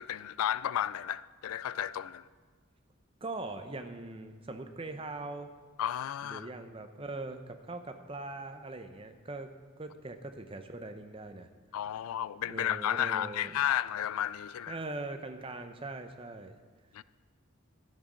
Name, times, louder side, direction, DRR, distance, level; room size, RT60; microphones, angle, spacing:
voice 1, 0.0-2.2 5.8-6.5 11.7-14.8 16.9-17.0, left 11 dB, 85° left, 0.3 m, -33 dB
voice 2, 3.2-5.5 6.2-11.5 12.5-13.6 14.7-16.5, right 2 dB, 25° right, 0.6 m, -41 dB
12.5 x 7.5 x 5.1 m
head